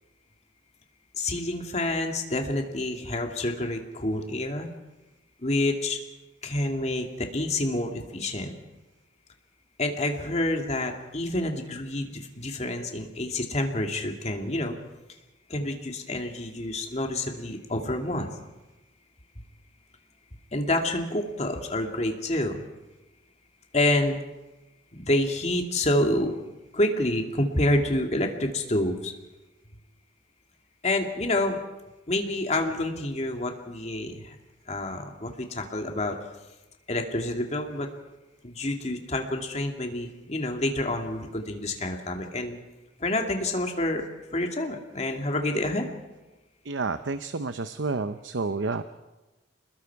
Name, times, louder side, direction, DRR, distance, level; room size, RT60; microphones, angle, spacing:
voice 1, 1.2-4.7 5.4-6.0 6.4-8.5 9.8-14.8 15.5-18.3 20.5-22.6 23.7-24.2 24.9-26.3 26.7-29.1 30.8-31.6 32.1-34.4 34.7-36.2 36.9-37.9 38.4-42.6 43.0-44.1 44.3-45.9, left 1 dB, 35° left, 3 dB, 2.4 m, -28 dB
voice 2, 46.7-48.8, right 3 dB, 90° right, 10 dB, 0.8 m, -30 dB
29.0 x 20.5 x 4.8 m, 1.1 s
head